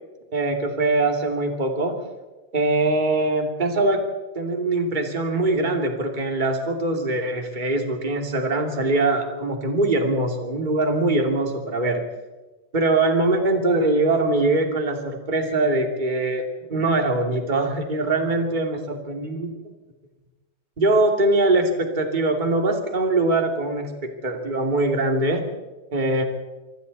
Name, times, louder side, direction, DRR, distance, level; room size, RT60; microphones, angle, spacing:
voice 1, 0.3-2.0 2.5-4.1 4.3-12.0 12.7-16.4 16.7-19.5 20.8-25.4 25.9-26.2, right 2 dB, 15° right, 3 dB, 2.0 m, -22 dB
25.5 x 25.5 x 4.2 m, 1.2 s
omnidirectional pair, 4.7 m